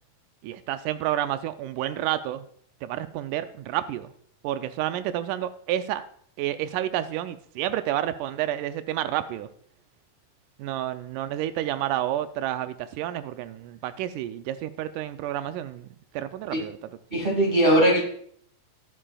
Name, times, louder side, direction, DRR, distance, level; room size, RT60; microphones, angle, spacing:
voice 1, 0.4-2.4 2.8-4.1 4.4-6.0 6.4-9.5 10.6-15.9 16.1-17.0, right 12 dB, 90° right, 10 dB, 1.8 m, -30 dB
voice 2, 17.1-18.0, right 1 dB, 25° right, -1 dB, 1.1 m, -20 dB
21.0 x 7.6 x 2.3 m, 0.62 s
omnidirectional pair, 4.2 m